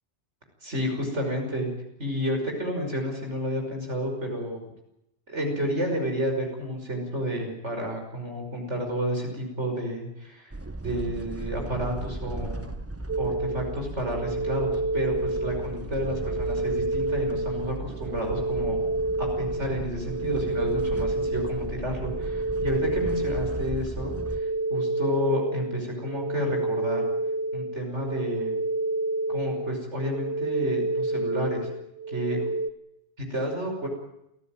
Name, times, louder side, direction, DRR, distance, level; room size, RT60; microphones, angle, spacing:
voice 1, 0.6-1.7 2.0-4.6 5.3-10.5 10.8-12.6 13.2-18.8 19.2-24.2 24.7-27.0 27.5-28.6 29.3-31.7 32.1-32.4 33.3-33.9, equal, 85° right, 2 dB, 6.1 m, -30 dB
sound 1, 10.5-24.4, right 2 dB, 15° right, 1.0 m, -37 dB
sound 2, 13.1-32.7, right 2 dB, 60° right, 1.4 m, -29 dB
28.0 x 15.0 x 9.2 m, 0.85 s
omnidirectional pair, 1.2 m